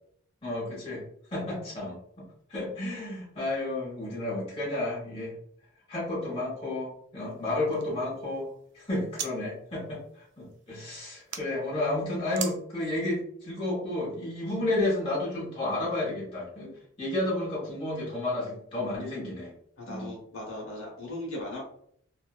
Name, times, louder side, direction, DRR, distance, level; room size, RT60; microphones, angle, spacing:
voice 1, 0.4-1.0 1.3-2.2 2.5-5.3 5.9-16.7 17.0-19.5 19.9-20.1, left 2 dB, 25° left, -6 dB, 1.0 m, -32 dB
sound 1, 7.2-9.3 9.7-11.4 12.3-12.6, right 8 dB, 55° right, 0.3 m, -42 dB
voice 2, 19.8-21.6, left 1 dB, 70° left, -3 dB, 0.9 m, -38 dB
2.6 x 2.3 x 2.3 m, 0.66 s
head